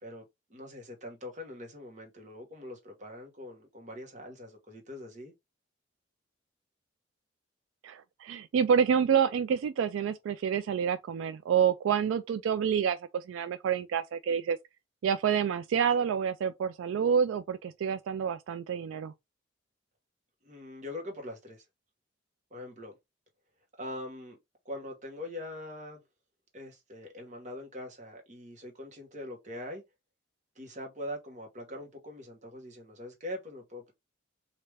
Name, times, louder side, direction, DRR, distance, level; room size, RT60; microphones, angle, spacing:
voice 1, 0.0-5.3 20.4-21.6 22.5-23.0 23.8-24.4 24.6-26.0 26.5-29.8 30.6-33.9, left 1 dB, 40° right, 1.0 m, -42 dB
voice 2, 7.8-14.6 15.0-19.1, right 7 dB, 80° right, 0.3 m, -28 dB
3.2 x 2.5 x 3.2 m
head